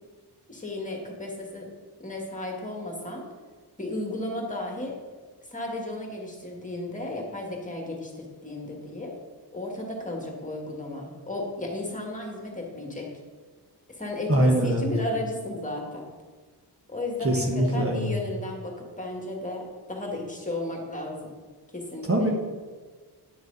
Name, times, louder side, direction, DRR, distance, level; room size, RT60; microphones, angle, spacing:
voice 1, 0.5-1.7 2.0-3.2 3.8-5.0 5.5-9.1 9.5-13.1 13.9-16.1 16.9-19.6 19.9-21.3 21.7-22.3, left 2 dB, 20° left, 0 dB, 1.9 m, -34 dB
voice 2, 14.3-14.9 17.2-18.1 22.1-22.3, right 1 dB, 35° right, 0 dB, 1.2 m, -23 dB
9.8 x 6.3 x 4.0 m, 1.4 s
wide cardioid pair, 95°, 41 cm